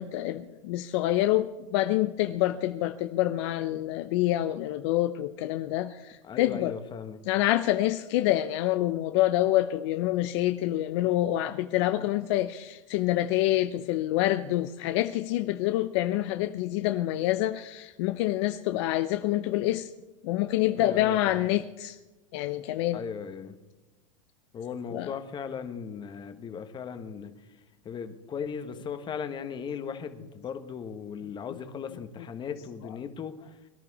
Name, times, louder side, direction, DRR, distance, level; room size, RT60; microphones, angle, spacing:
voice 1, 0.0-6.8 7.3-19.9 20.2-22.0 22.3-23.0 24.9-25.1, left 14 dB, 60° left, 0.7 m, -27 dB
voice 2, 6.2-7.2 20.8-21.4 22.9-23.6 24.5-27.3 27.8-33.3, left 7 dB, 30° left, 1.5 m, -37 dB
23.0 x 11.0 x 4.2 m
hypercardioid pair, 110°, 16 cm